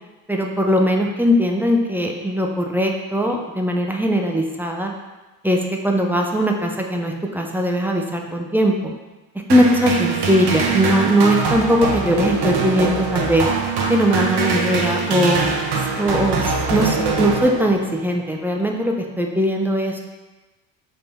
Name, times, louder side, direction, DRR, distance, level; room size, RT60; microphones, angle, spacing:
voice 1, 0.3-4.9 5.4-8.9 9.5-13.5 13.9-15.4 16.0-20.0, equal, 5° right, 1 dB, 0.4 m, -20 dB
sound 1, 9.5-18.0, right 4 dB, 55° right, 0.8 m, -22 dB
3.8 x 2.8 x 4.0 m, 1.2 s
hypercardioid pair, 60°, 48 cm